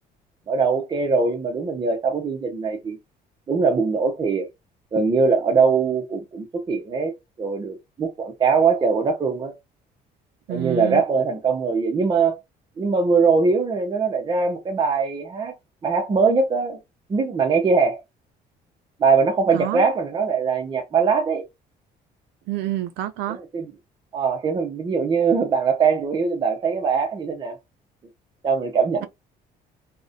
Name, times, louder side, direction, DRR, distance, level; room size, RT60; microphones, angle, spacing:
voice 1, 0.5-3.0 3.5-4.5 4.9-9.5 10.5-12.4 12.8-15.5 15.8-16.8 17.1-18.0 19.0-21.4 23.3-23.7 24.1-27.6 28.4-29.1, right 5 dB, 25° right, 0.5 m, -21 dB
voice 2, 10.5-11.0 19.5-19.9 22.5-23.4, right 13 dB, 85° right, 0.4 m, -28 dB
2.4 x 2.1 x 2.6 m
cardioid pair, 110°, 17 cm